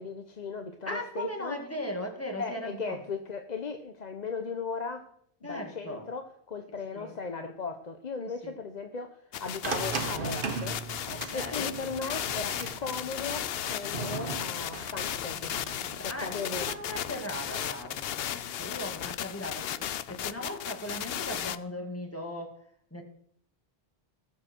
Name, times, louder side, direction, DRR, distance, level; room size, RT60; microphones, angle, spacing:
voice 1, 0.0-1.6 2.4-5.1 5.4-10.8 11.3-15.6 16.0-16.7, left 4 dB, 45° left, 6 dB, 1.0 m, -37 dB
voice 2, 0.9-3.0 5.4-6.1 6.9-7.1 8.2-8.5 10.1-10.5 11.1-11.7 15.8-22.6 22.9-23.0, left 1 dB, 15° left, 2 dB, 2.2 m, -38 dB
sound 1, 9.3-21.6, left 10 dB, 70° left, 0.8 m, -35 dB
sound 2, 9.6-17.7, right 4 dB, 55° right, 1.4 m, -39 dB
20.0 x 7.3 x 4.5 m, 0.67 s
omnidirectional pair, 1.1 m